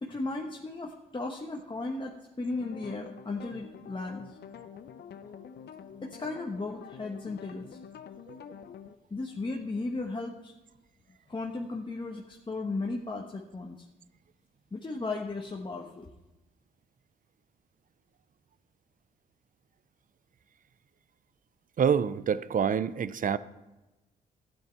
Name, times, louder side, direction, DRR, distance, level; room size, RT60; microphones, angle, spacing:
voice 1, 0.0-4.4 6.0-7.8 9.1-10.5 11.3-13.8 14.7-16.1, left 3 dB, 25° left, 0 dB, 1.2 m, -35 dB
sound 1, 2.5-9.0, left 7 dB, 65° left, 0.7 m, -47 dB
voice 2, 21.8-23.4, right 7 dB, 50° right, 16 dB, 0.6 m, -26 dB
12.0 x 9.2 x 4.5 m, 1.1 s
supercardioid pair, 55°, 18 cm